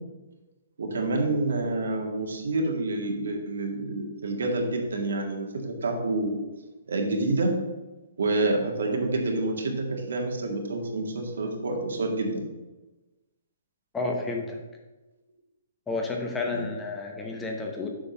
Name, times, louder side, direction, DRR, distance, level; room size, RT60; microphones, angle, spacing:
voice 1, 0.8-6.4 6.9-7.6 8.2-12.5 16.5-16.7, right 2 dB, 85° right, 2 dB, 1.8 m, -28 dB
voice 2, 13.9-14.6 15.9-17.9, left 3 dB, 10° left, 1 dB, 0.8 m, -31 dB
7.7 x 3.8 x 5.9 m, 1.1 s
hypercardioid pair, 165°, 0 cm